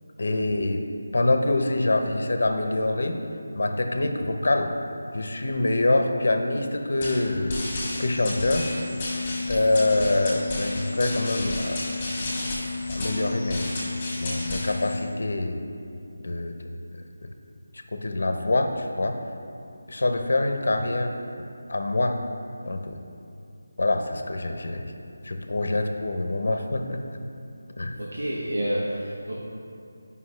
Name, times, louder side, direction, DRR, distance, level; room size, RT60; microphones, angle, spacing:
voice 1, 0.2-0.8 1.1-3.2 3.5-4.7 5.1-7.5 8.0-8.7 9.5-11.8 12.9-13.7 14.2-15.6 16.2-16.6 17.2-17.3 17.9-19.2 19.9-21.1 21.7-22.2 22.7-23.0 23.8-24.9 25.2-27.0 27.8-28.0, left 2 dB, 60° left, 5 dB, 0.7 m, -25 dB
sound 1, 7.0-15.0, left 2 dB, 15° left, 1.6 m, -30 dB
voice 2, 28.1-29.4, equal, 85° right, -6 dB, 1.2 m, -28 dB
9.6 x 5.4 x 3.2 m, 2.5 s
figure-of-eight pair, 175°, 0 cm